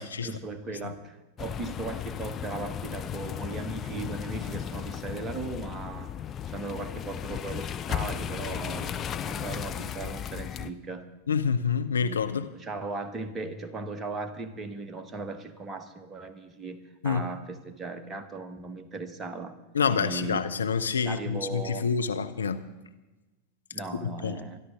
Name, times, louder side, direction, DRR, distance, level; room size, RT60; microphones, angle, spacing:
voice 1, 0.2-6.1 6.5-11.1 12.0-12.3 12.5-16.8 17.0-19.5 19.9-20.5 21.0-21.9 23.7-24.6, right 3 dB, 20° right, 7 dB, 1.5 m, -37 dB
sound 1, 1.4-10.7, left 9 dB, 25° left, 0.6 m, -35 dB
voice 2, 11.3-12.5 17.0-17.3 19.7-22.6 23.9-24.4, left 6 dB, 70° left, 8 dB, 0.8 m, -27 dB
25.5 x 11.5 x 3.8 m, 1.1 s
figure-of-eight pair, 90°, 0 cm